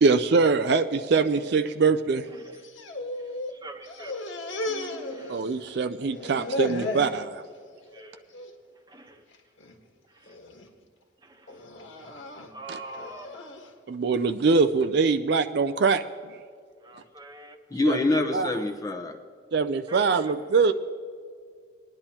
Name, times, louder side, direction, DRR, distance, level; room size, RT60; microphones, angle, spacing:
voice 1, 0.0-2.3 5.3-7.4 12.7-12.8 13.9-16.4 17.8-18.0 18.3-18.5 19.5-20.7, right 4 dB, 55° right, 8 dB, 0.4 m, -23 dB
voice 2, 2.3-2.7 3.1-5.4 7.9-8.2 8.9-9.3 10.1-10.4 11.2-11.7 12.5-13.4 16.8-17.6 19.9-20.7, right 1 dB, 20° right, 5 dB, 1.0 m, -45 dB
sound 1, 2.5-3.6 3.8-5.7 6.0-7.2 7.6-8.0 8.3-8.5 9.3-9.7 10.3-10.7 11.5-13.7, left 2 dB, 70° left, 1.5 m, -35 dB
voice 3, 17.7-19.2, left 2 dB, 20° left, 3 dB, 0.8 m, -25 dB
21.0 x 10.5 x 2.9 m, 2.1 s
head